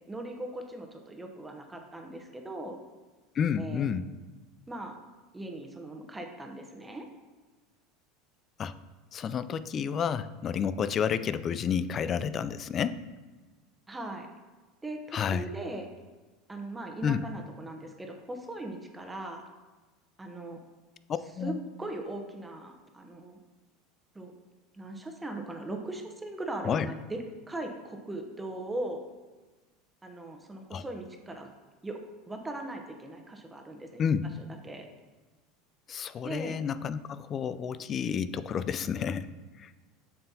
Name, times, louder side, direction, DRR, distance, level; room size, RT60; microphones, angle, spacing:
voice 1, 0.0-2.8 3.6-3.8 4.7-5.0 5.3-7.1 13.9-14.3 14.8-15.9 16.5-19.4 20.2-20.6 21.4-23.4 24.1-24.3 24.8-29.0 30.0-31.5 31.8-32.0 32.3-34.1 34.6-34.9 36.2-36.6, right 2 dB, 15° right, 4 dB, 0.9 m, -39 dB
voice 2, 3.3-4.1 8.6-8.7 9.1-13.0 15.1-15.4 17.0-17.2 21.3-21.6 26.6-26.9 30.7-30.8 34.0-34.3 35.9-39.3 39.6-39.7, left 7 dB, 40° left, 14 dB, 0.4 m, -30 dB
7.1 x 6.8 x 2.8 m, 1.3 s
hypercardioid pair, 90°, 0 cm